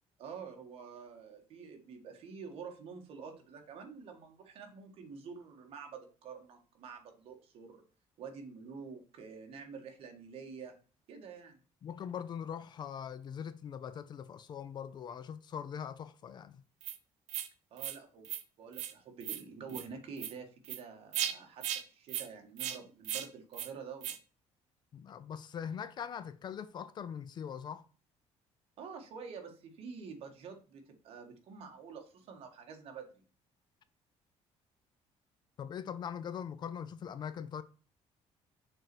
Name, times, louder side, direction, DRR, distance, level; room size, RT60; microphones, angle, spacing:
voice 1, 0.2-7.8 8.2-10.7 11.1-11.6 17.7-18.3 18.6-24.2 28.8-33.1, right 5 dB, 55° right, 1.9 m, -48 dB
voice 2, 11.8-16.6 24.9-27.8 35.6-37.6, left 8 dB, 40° left, 0.5 m, -41 dB
sound 1, 16.8-17.0 17.3-17.5 17.8-18.0 18.2-18.4 18.7-18.9 19.2-19.4 19.7-19.8 20.2-20.3 20.6-20.8 21.1-21.3 21.6-21.8 22.1-22.3 22.6-22.8 23.0-23.3 23.5-23.7 24.0-24.2, right 11 dB, 80° right, 0.9 m, -37 dB
6.6 x 4.1 x 6.2 m
cardioid pair, 165°, 12 cm